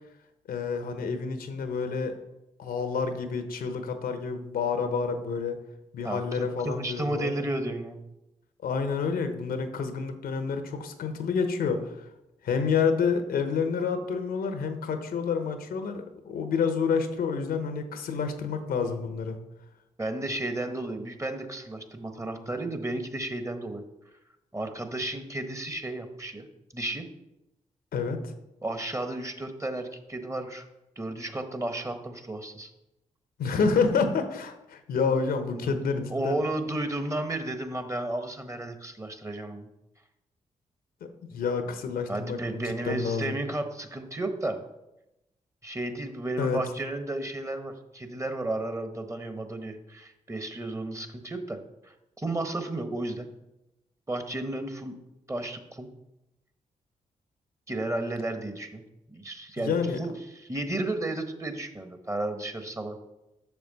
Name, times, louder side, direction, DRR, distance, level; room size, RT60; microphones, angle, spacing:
voice 1, 0.5-2.1 2.6-5.6 5.9-7.3 8.6-12.1 12.4-19.4 27.9-28.3 33.4-36.4 41.3-43.3 46.4-46.6 59.6-60.0, left 5 dB, 70° left, 8 dB, 0.9 m, -28 dB
voice 2, 6.0-8.0 20.0-23.8 24.5-26.5 26.7-27.1 28.6-30.7 31.0-32.7 35.5-39.7 42.1-44.6 45.6-53.3 54.1-55.0 55.3-55.9 57.7-58.8 59.1-63.0, right 2 dB, 20° right, 7 dB, 1.2 m, -33 dB
6.9 x 6.0 x 4.1 m, 0.91 s
hypercardioid pair, 40°, 16 cm